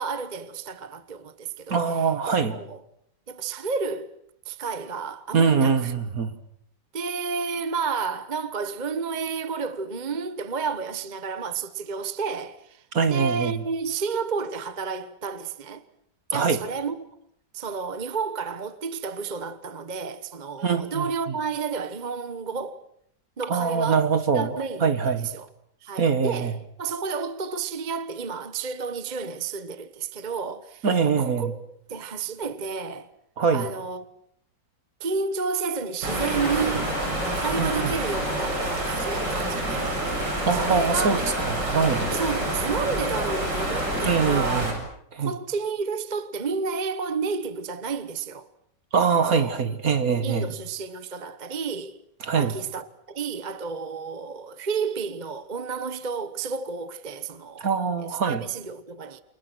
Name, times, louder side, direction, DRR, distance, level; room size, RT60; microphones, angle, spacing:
voice 1, 0.0-2.8 3.3-4.1 4.4-5.9 6.9-12.8 13.1-15.8 16.3-17.0 17.5-22.8 23.4-24.0 24.3-25.5 25.8-31.6 31.9-33.1 33.5-34.0 35.0-37.0 37.3-40.0 40.5-41.2 42.1-44.7 45.2-48.5 49.3-49.5 50.2-52.0 52.4-57.7 58.1-59.2, right 5 dB, 30° right, 1.1 m, -31 dB
voice 2, 1.7-2.6 5.3-6.3 12.9-13.6 16.3-16.6 20.6-21.1 23.5-25.3 26.0-26.5 30.8-31.5 33.4-33.7 37.6-37.9 40.4-42.1 44.0-44.7 45.1-45.3 48.9-50.5 52.2-52.5 57.6-58.4, right 5 dB, 50° right, 2.1 m, -23 dB
sound 1, 36.0-44.7, right 1 dB, 65° right, 8.3 m, -27 dB
28.5 x 28.5 x 6.2 m
omnidirectional pair, 2.0 m